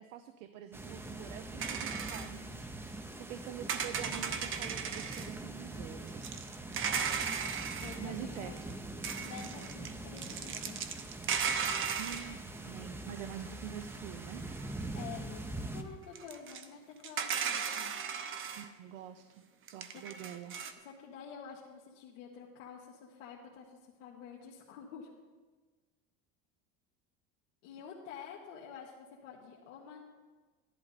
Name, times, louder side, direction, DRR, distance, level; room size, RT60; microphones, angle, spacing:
voice 1, 0.0-2.5 2.9-6.2 8.0-8.7 12.0-14.4 18.5-19.4 19.7-20.6, right 10 dB, 85° right, 10 dB, 0.7 m, -46 dB
sound 1, 0.7-15.8, right 2 dB, 5° right, 0.6 m, -43 dB
sound 2, 1.6-2.3 3.7-5.3 6.1-8.0 8.6-8.7 9.0-12.6 13.4-13.5 13.9-14.0 14.5-14.8 16.1-16.6 17.0-18.7 19.7-20.7, right 7 dB, 35° right, 0.9 m, -36 dB
voice 2, 6.7-7.0 7.7-8.6 9.1-10.8 14.9-17.9 20.8-25.1 27.6-30.1, left 7 dB, 85° left, -3 dB, 1.7 m, -49 dB
13.5 x 11.5 x 4.1 m, 1.4 s
supercardioid pair, 135°, 37 cm